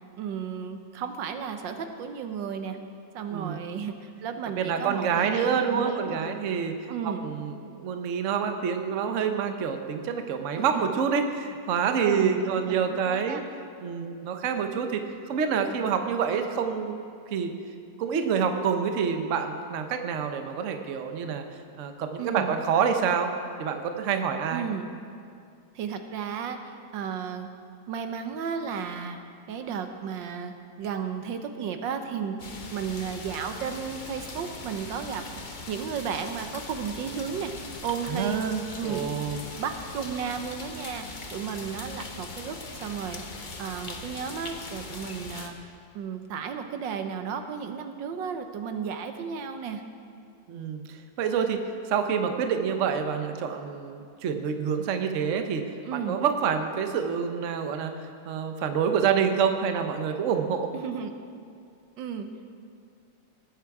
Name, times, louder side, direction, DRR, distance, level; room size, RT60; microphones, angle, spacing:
voice 1, 0.2-2.8 3.1-6.4 6.9-7.3 10.6-10.8 12.0-12.8 13.1-13.4 22.2-22.6 24.5-24.9 25.7-27.5 27.9-29.2 29.5-32.4 32.7-37.5 37.8-38.4 38.8-39.0 39.6-41.0 41.3-45.5 45.9-49.8 55.8-56.2 60.7-61.1 62.0-62.3, right 7 dB, 80° right, 7 dB, 1.5 m, -34 dB
voice 2, 4.6-13.4 13.8-15.0 15.3-17.5 18.0-21.4 21.8-23.3 23.6-24.6 38.1-39.4 50.5-58.0 58.3-60.7, right 6 dB, 55° right, 6 dB, 1.0 m, -27 dB
sound 1, 32.4-45.5, left 3 dB, 40° left, 0.7 m, -40 dB
19.0 x 8.3 x 4.8 m, 2.3 s
omnidirectional pair, 2.0 m